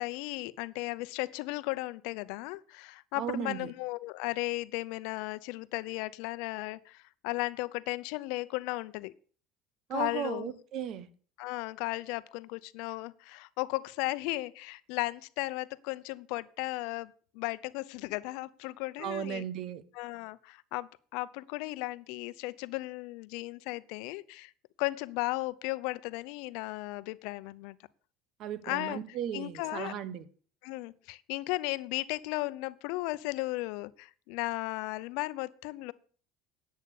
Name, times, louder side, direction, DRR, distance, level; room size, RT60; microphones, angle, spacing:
voice 1, 0.0-9.1 9.9-10.5 11.4-19.4 19.9-24.5 24.8-27.8 28.6-29.0 29.3-29.9 30.6-35.9, left 21 dB, 75° left, 0.7 m, -35 dB
voice 2, 3.2-3.7 9.9-11.1 19.0-19.8 28.4-30.3, right 9 dB, 55° right, 1.3 m, -36 dB
11.0 x 8.3 x 6.6 m
supercardioid pair, 115°, 0 cm